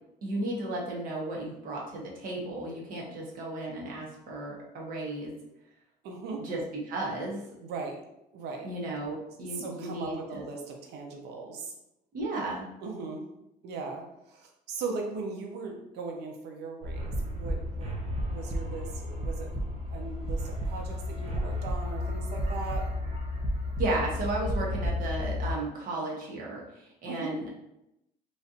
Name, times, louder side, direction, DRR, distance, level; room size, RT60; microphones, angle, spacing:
voice 1, 0.2-5.3 6.4-6.6 6.9-7.4 8.6-10.4 12.1-12.7 23.8-27.5, right 2 dB, 55° right, -3 dB, 1.2 m, -34 dB
voice 2, 6.0-6.4 7.6-8.0 8.3-8.7 9.5-11.7 12.8-13.2 13.6-19.5 19.9-22.9 27.1-27.3, right 4 dB, 80° right, 2 dB, 0.7 m, -38 dB
sound 1, 16.8-25.5, left 1 dB, 35° right, 0.7 m, -32 dB
3.2 x 2.5 x 2.7 m, 0.84 s
cardioid pair, 110°, 17 cm